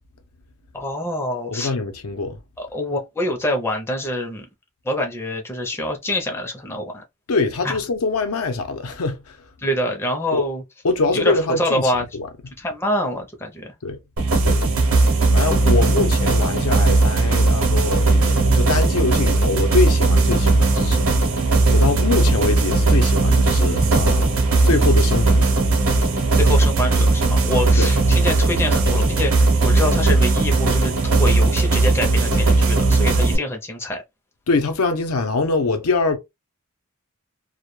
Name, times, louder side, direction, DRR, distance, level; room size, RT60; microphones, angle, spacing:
voice 1, 0.7-1.7 2.6-4.5 4.8-7.0 7.6-7.7 9.6-10.6 11.1-12.1 12.6-13.7 15.6-15.8 26.4-34.0, left 1 dB, 10° left, 0.4 m, -25 dB
voice 2, 1.5-2.4 7.3-9.4 10.3-10.4 10.8-12.3 13.8-14.0 14.4-14.6 15.3-21.1 21.7-25.6 27.8-27.9 34.5-36.2, left 3 dB, 85° left, 0.6 m, -23 dB
sound 1, 14.2-33.4, right 3 dB, 70° right, 0.8 m, -17 dB
2.1 x 2.1 x 2.9 m
head